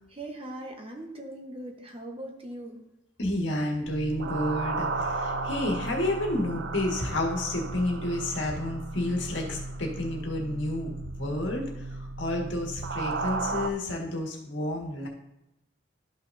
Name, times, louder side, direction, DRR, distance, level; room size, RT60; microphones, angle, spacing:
voice 1, 0.1-2.8, right 1 dB, 30° right, 2 dB, 1.0 m, -40 dB
voice 2, 3.2-10.9 11.2-15.1, left 1 dB, 75° left, 0 dB, 1.7 m, -30 dB
sound 1, 3.9-13.7, right 3 dB, 65° right, 0.5 m, -34 dB
12.5 x 5.8 x 2.6 m, 0.87 s
head